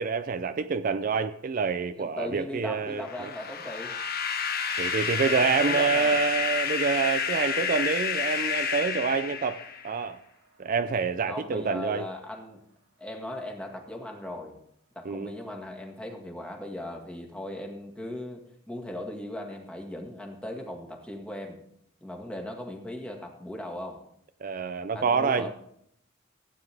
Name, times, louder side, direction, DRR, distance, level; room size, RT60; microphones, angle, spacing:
voice 1, 0.0-3.3 4.8-10.2 10.6-12.0 15.1-15.3 24.4-25.5, right 5 dB, 45° right, 10 dB, 0.4 m, -27 dB
voice 2, 2.0-4.0 5.3-6.2 11.3-12.6 13.0-14.6 15.0-21.6 22.0-24.0 24.9-25.5, left 1 dB, 5° left, 1 dB, 1.7 m, -38 dB
sound 1, 3.0-10.0, left 6 dB, 50° left, 1.0 m, -30 dB
Gong, 4.7-12.3 12.7-12.8, right 5 dB, 85° right, 1.6 m, -47 dB
15.5 x 9.2 x 3.5 m, 0.71 s
head